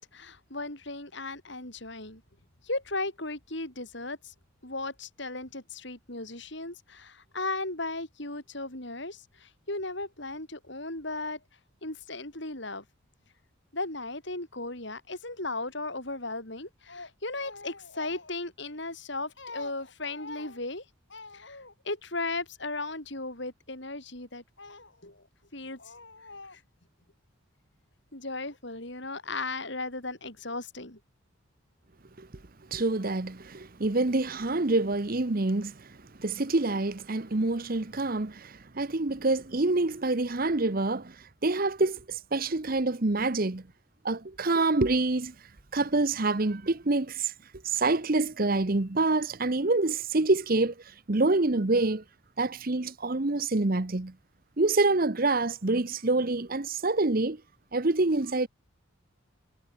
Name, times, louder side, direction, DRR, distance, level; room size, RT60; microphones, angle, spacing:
voice 1, 0.0-2.2 2.6-4.3 4.6-11.4 11.8-12.8 13.7-20.8 21.1-25.2 25.5-26.6 28.1-31.0, left 2 dB, 55° left, 5.8 m, -36 dB
voice 2, 32.7-43.6 44.0-45.3 45.7-47.3 47.6-52.0 52.4-54.1 54.6-57.4 57.7-58.5, right 2 dB, 45° right, 1.0 m, -27 dB
head